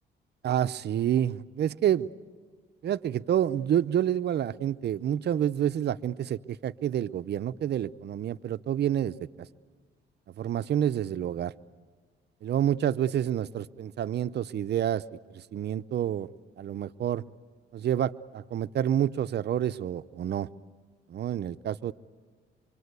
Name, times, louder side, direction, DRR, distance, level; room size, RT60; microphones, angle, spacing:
voice 1, 0.4-2.1 2.8-9.5 10.4-11.5 12.4-15.0 15.3-16.3 16.6-17.2 17.7-20.5 21.1-21.9, right 10 dB, 55° right, 14 dB, 0.7 m, -28 dB
25.0 x 25.0 x 8.2 m, 1.5 s
cardioid pair, 90°, 20 cm